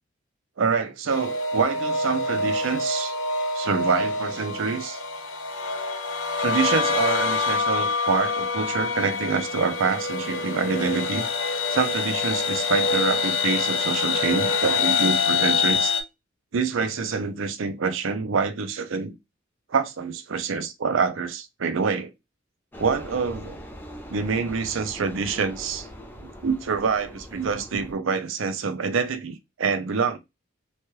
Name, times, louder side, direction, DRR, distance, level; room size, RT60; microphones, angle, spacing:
voice 1, 0.6-3.1 3.5-5.0 6.4-11.3 11.7-15.9 16.5-19.1 19.7-22.1 22.8-23.6 24.1-25.9 26.4-30.2, right 5 dB, 75° right, 0.5 m, -26 dB
sound 1, 1.1-16.0, left 4 dB, 75° left, 0.5 m, -26 dB
sound 2, 22.7-27.9, equal, 10° left, 0.4 m, -41 dB
3.1 x 2.2 x 3.0 m
head